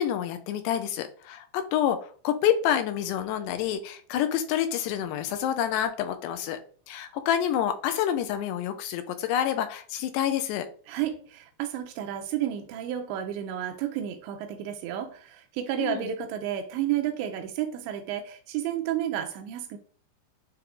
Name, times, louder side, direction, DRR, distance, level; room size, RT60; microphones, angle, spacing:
voice 1, 0.0-6.6 6.9-10.7 15.8-16.1, left 10 dB, 80° left, 2.6 m, -28 dB
voice 2, 10.9-19.8, right 11 dB, 85° right, 3.1 m, -31 dB
9.9 x 3.5 x 3.7 m
omnidirectional pair, 5.2 m